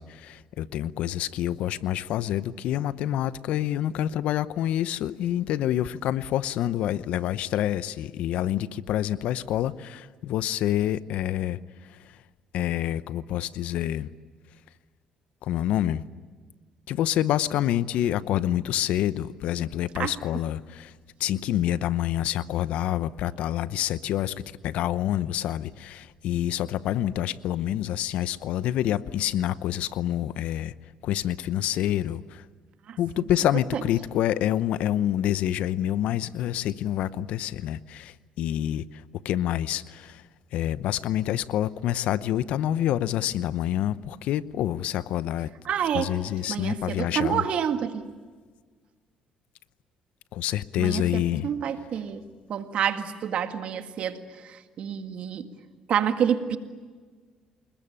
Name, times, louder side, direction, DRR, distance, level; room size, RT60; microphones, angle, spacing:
voice 1, 0.0-11.6 11.9-12.0 12.5-14.1 15.4-16.0 16.9-20.9 21.2-30.7 31.0-32.4 33.0-40.2 40.5-45.5 45.9-47.4 50.3-51.5, left 12 dB, 75° left, 16 dB, 0.8 m, -27 dB
voice 2, 32.9-33.3 33.7-33.8 45.7-46.1 46.5-48.0 50.8-52.2 52.5-54.2 54.4-55.5 55.9-56.6, right 8 dB, 65° right, 8 dB, 2.0 m, -28 dB
28.0 x 21.0 x 8.9 m, 1.5 s
cardioid pair, 90°, 2 cm